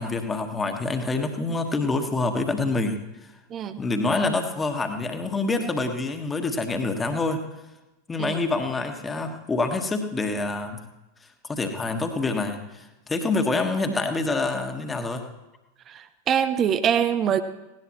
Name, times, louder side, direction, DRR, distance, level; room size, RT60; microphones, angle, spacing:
voice 1, 0.0-3.0 3.8-7.4 8.1-10.8 11.4-15.2, left 3 dB, 15° left, 5 dB, 1.7 m, -26 dB
voice 2, 15.9-17.4, right 8 dB, 30° right, 10 dB, 0.8 m, -24 dB
18.5 x 18.0 x 3.2 m, 1.0 s
figure-of-eight pair, 90°, 0 cm